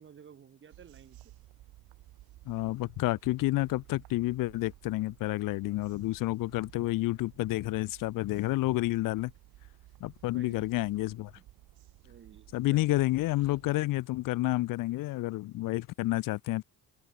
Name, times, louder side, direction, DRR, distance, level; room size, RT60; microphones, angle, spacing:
voice 1, 0.0-1.3 10.3-10.8 11.4-11.5 12.0-12.9, right 7 dB, 35° right, 1.0 m, -53 dB
sound 1, 0.7-13.7, right 16 dB, 80° right, 4.1 m, -55 dB
voice 2, 2.5-9.3 10.0-11.3 12.5-16.6, left 18 dB, 65° left, 0.6 m, -30 dB
cardioid pair, 120°, 36 cm